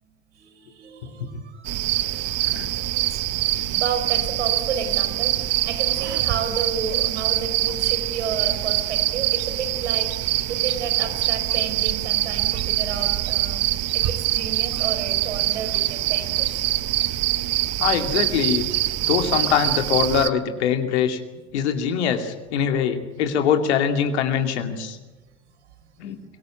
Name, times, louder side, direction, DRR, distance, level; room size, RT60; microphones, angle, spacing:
voice 1, 0.3-1.7 1.9-2.3 2.5-16.7 26.1-26.2, right 6 dB, 80° right, 7 dB, 5.1 m, -32 dB
sound 1, 1.6-20.3, right 15 dB, 50° right, 1.3 m, -24 dB
voice 2, 17.8-18.7 19.1-21.2 21.5-25.0 26.0-26.2, left 8 dB, 75° left, 6 dB, 2.5 m, -23 dB
24.0 x 18.0 x 8.8 m, 1.2 s
hypercardioid pair, 80°, 34 cm